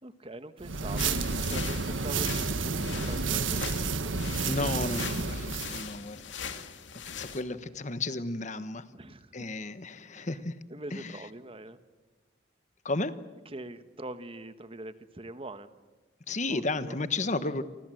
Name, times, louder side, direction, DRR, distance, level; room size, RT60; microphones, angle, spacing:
voice 1, 0.0-1.2 1.5-4.7 8.9-9.3 10.7-11.8 13.5-15.7 16.5-17.0, right 1 dB, 30° right, 11 dB, 1.3 m, -43 dB
sound 1, 0.6-5.9, right 4 dB, 85° right, 1.5 m, -30 dB
sound 2, 1.0-7.4, left 6 dB, 70° left, 2.3 m, -41 dB
voice 2, 4.5-6.6 7.2-8.9 9.3-10.6 10.9-11.2 12.8-13.1 16.3-17.6, left 2 dB, 40° left, 13 dB, 1.2 m, -33 dB
29.0 x 25.5 x 7.8 m, 1.3 s
head